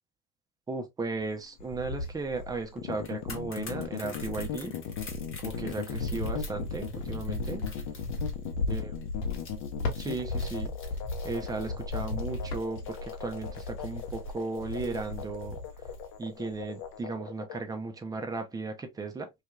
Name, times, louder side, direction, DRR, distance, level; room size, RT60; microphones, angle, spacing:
voice 1, 0.7-4.7 5.4-7.6 8.7-8.9 10.0-10.7 11.2-15.9 16.2-19.3, right 3 dB, 10° right, 0.4 m, -36 dB
Cricket, 1.2-2.7 3.2-16.2 16.5-17.0, left 2 dB, 80° left, 0.8 m, -36 dB
sound 1, 2.8-17.6, left 10 dB, 45° left, 0.6 m, -39 dB
sound 2, 2.9-16.1 16.4-16.5, left 4 dB, 25° left, 1.0 m, -50 dB
2.7 x 2.4 x 2.2 m
hypercardioid pair, 70°, 48 cm